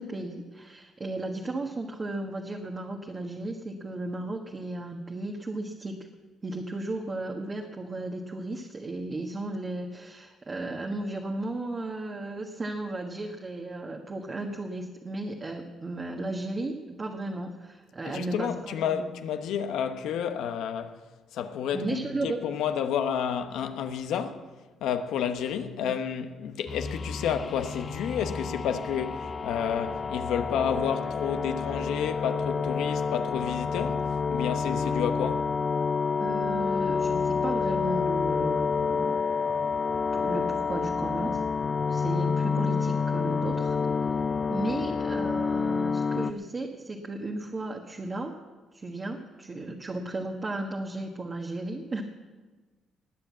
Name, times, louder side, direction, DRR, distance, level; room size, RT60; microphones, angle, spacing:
voice 1, 0.0-6.1 6.4-19.1 21.7-22.4 25.8-25.9 36.2-39.2 40.1-41.4 41.9-43.8 44.5-48.3 48.7-52.0, right 2 dB, 30° right, 1.5 m, -35 dB
voice 2, 18.0-21.0 21.3-24.5 24.8-35.5, left 8 dB, 85° left, 1.1 m, -30 dB
sound 1, 26.7-46.3, left 5 dB, 40° left, 0.6 m, -28 dB
20.0 x 7.7 x 7.4 m
cardioid pair, 90°, 0 cm